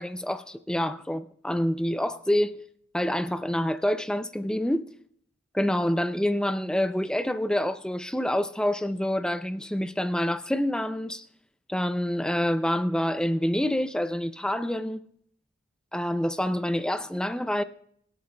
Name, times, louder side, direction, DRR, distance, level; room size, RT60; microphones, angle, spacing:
voice 1, 0.0-2.6 2.9-4.9 5.5-11.3 11.7-15.0 15.9-17.6, left 1 dB, 5° left, 0.3 m, -27 dB
24.5 x 8.5 x 2.2 m
head